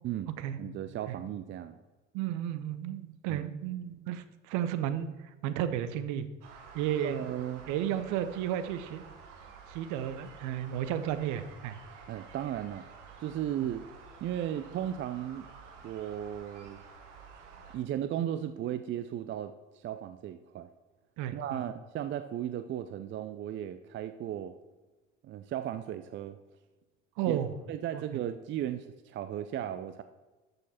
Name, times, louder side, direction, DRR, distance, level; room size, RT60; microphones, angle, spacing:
voice 1, 0.6-1.8 3.3-3.4 7.0-7.7 12.1-12.8 13.2-13.9 14.2-15.5 15.8-16.8 17.7-20.7 21.3-24.5 25.2-26.4 27.3-27.4 27.7-30.0, right 11 dB, 30° right, 10 dB, 0.6 m, -36 dB
voice 2, 2.1-6.3 6.7-7.2 7.7-9.1 9.7-11.8 21.2-21.6 27.2-27.5, right 10 dB, 50° right, 12 dB, 1.0 m, -33 dB
sound 1, 6.4-17.8, right 5 dB, 70° right, 1.7 m, -51 dB
13.0 x 6.7 x 4.3 m, 1.2 s
figure-of-eight pair, 70°, 37 cm